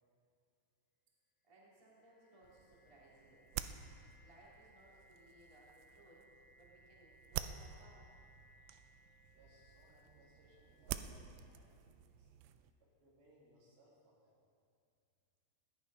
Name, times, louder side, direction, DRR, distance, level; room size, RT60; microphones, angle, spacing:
voice 1, 1.4-3.5 4.2-8.2, right 1 dB, 20° right, -5 dB, 0.9 m, -64 dB
sound 1, 1.7-11.5, left 1 dB, 90° left, 2.0 m, -68 dB
sound 2, 2.4-12.7, right 11 dB, 85° right, 2.9 m, -49 dB
voice 2, 9.3-12.3 12.8-14.4, right 1 dB, 65° right, -5 dB, 4.9 m, -68 dB
17.0 x 10.0 x 5.3 m, 2.4 s
omnidirectional pair, 5.6 m